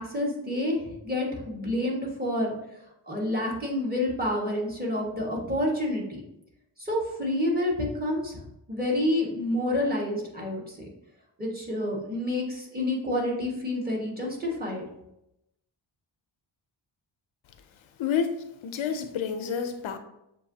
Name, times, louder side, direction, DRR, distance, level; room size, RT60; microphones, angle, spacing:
voice 1, 0.0-2.5 3.1-6.2 6.8-8.4 8.7-10.9 11.4-14.8, left 1 dB, 20° right, -3 dB, 1.5 m, -28 dB
voice 2, 18.0-18.3 18.6-20.0, left 7 dB, 80° left, 8 dB, 0.6 m, -29 dB
7.0 x 2.7 x 2.7 m, 0.84 s
cardioid pair, 85°, 48 cm